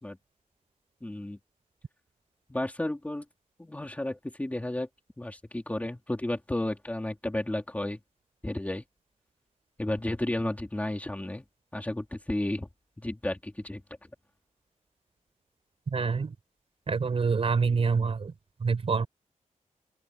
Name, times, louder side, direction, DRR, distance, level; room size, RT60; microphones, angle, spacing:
voice 1, 1.0-1.4 2.5-3.3 3.6-4.9 5.2-8.0 8.4-8.8 9.8-11.4 11.7-12.7 13.0-13.8, left 1 dB, 10° left, 3.2 m, -32 dB
voice 2, 15.9-16.3 16.9-18.3 18.6-19.1, right 5 dB, 45° right, 4.4 m, -26 dB
open air
wide cardioid pair, 170°, 13 cm